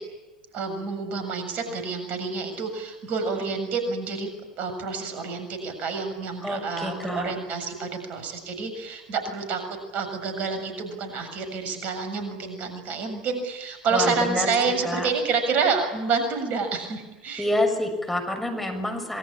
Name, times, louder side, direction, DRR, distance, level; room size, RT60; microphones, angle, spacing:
voice 1, 0.5-4.3 4.6-9.6 9.9-17.5, right 4 dB, 45° right, 7 dB, 7.0 m, -28 dB
voice 2, 6.4-7.3 13.9-15.1 17.4-19.2, left 1 dB, 5° left, 4 dB, 6.8 m, -27 dB
27.0 x 23.0 x 8.8 m, 1.1 s
figure-of-eight pair, 75°, 4 cm